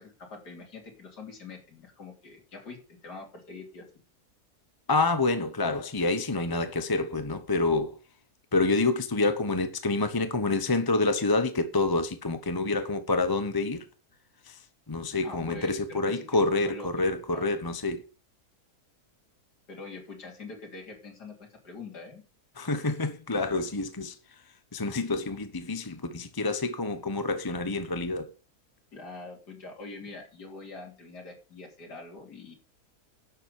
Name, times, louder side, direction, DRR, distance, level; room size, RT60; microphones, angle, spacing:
voice 1, 0.0-3.9 15.2-16.9 17.3-17.5 19.7-22.2 28.9-32.5, left 3 dB, 85° left, 3.7 m, -44 dB
voice 2, 4.9-8.0 8.5-13.8 14.5-14.6 14.9-18.0 22.6-24.2 24.7-28.3, left 3 dB, 20° left, 0.7 m, -27 dB
11.0 x 7.3 x 6.5 m
omnidirectional pair, 1.7 m